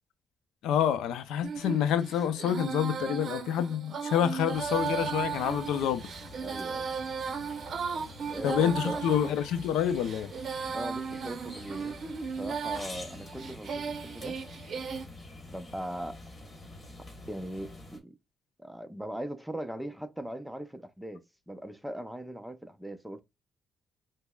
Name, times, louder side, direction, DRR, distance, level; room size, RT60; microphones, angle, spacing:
voice 1, 0.6-6.1 8.4-10.3, left 9 dB, 85° left, 0.5 m, -28 dB
Female singing, 1.4-15.1, right 6 dB, 55° right, 0.6 m, -36 dB
sound 1, 4.5-18.0, left 2 dB, 25° left, 1.4 m, -47 dB
voice 2, 6.4-6.9 8.3-9.0 10.7-12.0 12.4-14.4 15.5-16.2 17.3-18.2 18.6-23.2, right 1 dB, 5° right, 0.6 m, -39 dB
5.3 x 2.0 x 2.3 m
cardioid pair, 90°, 0 cm